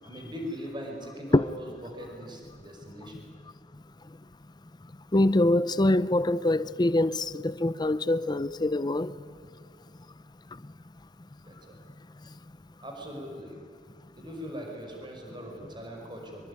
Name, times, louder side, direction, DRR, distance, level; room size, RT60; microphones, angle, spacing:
voice 1, 0.0-3.2 11.4-11.8 12.8-13.6 14.1-16.5, equal, 25° right, 5.1 m, -40 dB
voice 2, 5.1-9.2, left 1 dB, 25° left, 0.6 m, -24 dB
25.0 x 23.5 x 9.8 m
head